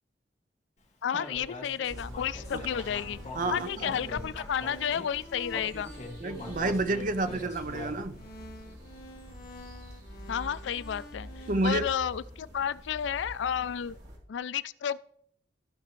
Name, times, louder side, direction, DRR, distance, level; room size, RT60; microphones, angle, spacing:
voice 1, 1.0-3.2 3.5-5.9 10.3-14.0 14.3-15.0, left 8 dB, 75° left, 0.3 m, -32 dB
Human voice, 1.2-5.1 5.5-8.2, left 2 dB, 40° left, 2.2 m, -43 dB
sound 1, 1.9-14.2, equal, 70° right, 3.3 m, -46 dB
sound 2, 2.3-11.7, equal, 55° left, 1.5 m, -49 dB
voice 2, 3.3-3.9 6.2-8.2 11.5-11.9, right 2 dB, 45° right, 0.6 m, -30 dB
15.0 x 5.1 x 3.1 m
head